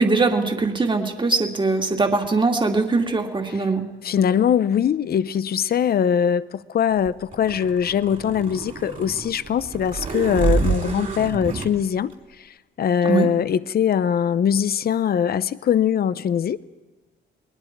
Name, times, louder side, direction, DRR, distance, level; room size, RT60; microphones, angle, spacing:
voice 1, 0.0-3.9 13.0-13.3, right 3 dB, 25° right, 2.5 m, -21 dB
voice 2, 4.0-16.6, left 8 dB, 50° left, 0.7 m, -22 dB
sound 1, 7.1-11.7, right 5 dB, 40° right, 3.2 m, -27 dB
29.5 x 20.5 x 4.7 m
cardioid pair, 90°, 20 cm